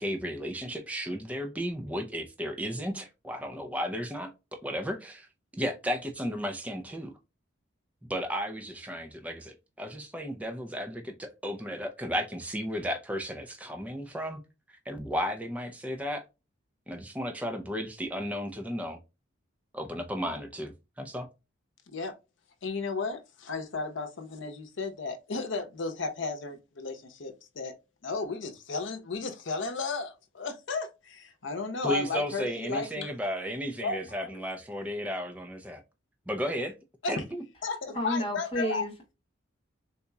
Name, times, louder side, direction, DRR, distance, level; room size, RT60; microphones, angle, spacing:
voice 1, 0.0-5.3 5.5-7.1 8.1-14.4 14.9-16.2 16.9-19.0 19.7-21.3 31.8-35.8 36.3-36.7 37.1-37.4, equal, 5° right, 0.5 m, -34 dB
voice 2, 22.6-27.7 28.0-33.1 33.8-34.3 37.0-37.2 37.6-38.8, left 3 dB, 70° left, 0.7 m, -34 dB
voice 3, 37.9-39.1, equal, 30° left, 1.1 m, -31 dB
4.0 x 2.8 x 2.3 m
head